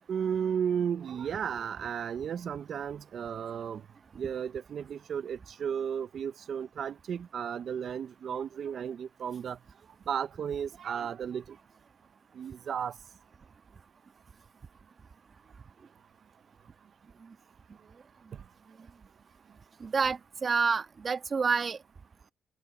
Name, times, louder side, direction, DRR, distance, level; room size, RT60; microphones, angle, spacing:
voice 1, 0.1-3.8 4.1-9.6 10.1-11.6 12.3-12.9, right 8 dB, 60° right, 0.6 m, -34 dB
voice 2, 19.8-21.8, right 5 dB, 40° right, 1.5 m, -28 dB
open air
cardioid pair, 90°, 0 cm